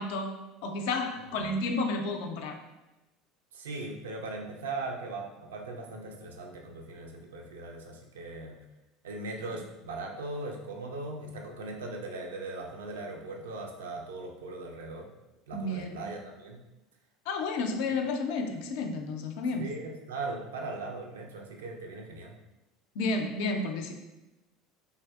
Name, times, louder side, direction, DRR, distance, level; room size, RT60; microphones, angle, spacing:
voice 1, 0.0-2.6 15.5-16.0 17.3-19.7 23.0-23.9, left 3 dB, 65° left, 4 dB, 0.4 m, -31 dB
voice 2, 1.3-1.6 3.5-8.6 9.0-15.1 15.5-16.6 19.6-22.4, right 2 dB, 80° right, 1 dB, 0.4 m, -39 dB
3.2 x 2.6 x 2.3 m, 0.99 s
hypercardioid pair, 75°, 0 cm